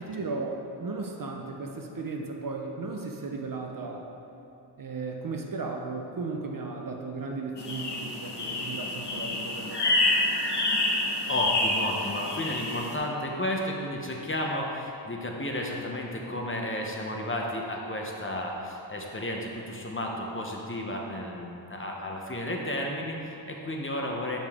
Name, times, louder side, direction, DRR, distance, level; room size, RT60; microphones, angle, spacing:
voice 1, 0.0-4.1 4.8-10.0, right 3 dB, 45° right, 2 dB, 0.7 m, -35 dB
sound 1, 7.6-12.9, left 2 dB, 60° left, 1.2 m, -28 dB
voice 2, 11.3-24.4, left 1 dB, 25° left, 0 dB, 0.8 m, -32 dB
8.7 x 5.1 x 3.6 m, 2.8 s
wide cardioid pair, 95°, 47 cm